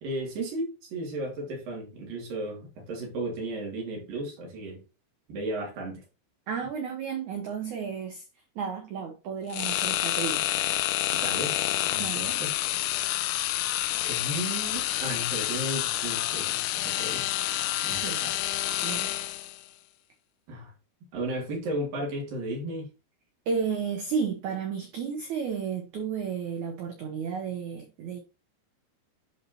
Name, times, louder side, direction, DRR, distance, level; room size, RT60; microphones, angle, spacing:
voice 1, 0.0-4.8 5.3-6.0 11.2-11.6 11.8-12.6 14.0-17.3 17.8-18.4 20.5-20.7 21.1-22.9, right 1 dB, 55° right, 3.9 m, -34 dB
voice 2, 6.5-8.2 8.5-10.5 12.0-12.4 17.9-18.2 18.8-19.1 23.5-28.2, right 6 dB, 85° right, 1.6 m, -32 dB
sound 1, 9.5-19.6, left 15 dB, 80° left, 2.2 m, -28 dB
11.0 x 4.4 x 2.8 m
omnidirectional pair, 4.9 m